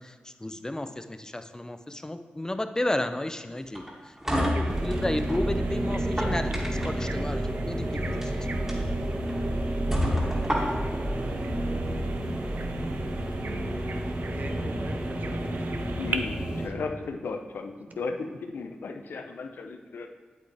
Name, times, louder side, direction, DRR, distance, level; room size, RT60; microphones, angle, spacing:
voice 1, 0.0-3.8 4.4-8.3, left 1 dB, 20° left, 9 dB, 0.6 m, -32 dB
sound 1, 3.7-5.4 6.0-7.1 8.0-8.3 8.7-8.8 9.3-9.4 9.9-11.0, equal, 15° right, 2.4 m, -29 dB
Bird vocalization bird call bird song, 4.4-16.2, right 4 dB, 70° right, 0.6 m, -42 dB
sound 2, 4.7-16.7, right 1 dB, 35° right, 1.6 m, -30 dB
voice 2, 10.7-11.5 14.3-15.7 17.9-18.0, right 2 dB, 55° right, 4 dB, 1.0 m, -43 dB
voice 3, 16.0-20.1, left 4 dB, 80° left, 5 dB, 0.7 m, -35 dB
8.4 x 8.3 x 3.4 m, 1.4 s
cardioid pair, 45°, 3 cm